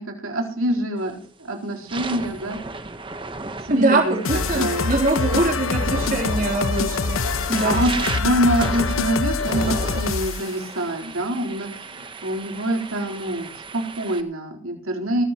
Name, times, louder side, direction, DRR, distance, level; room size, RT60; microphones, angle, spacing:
voice 1, 0.0-2.6 3.6-4.1 4.5-4.9 7.5-15.2, right 1 dB, 90° right, 0 dB, 4.0 m, -25 dB
sound 1, 1.0-1.3 1.7-14.2, right 3 dB, 25° right, 1.1 m, -35 dB
voice 2, 3.7-7.2 7.5-7.8, right 2 dB, 40° right, 0 dB, 3.5 m, -22 dB
sound 2, 4.2-10.5, left 4 dB, 85° left, 0.9 m, -25 dB
20.5 x 15.0 x 3.0 m, 0.42 s
head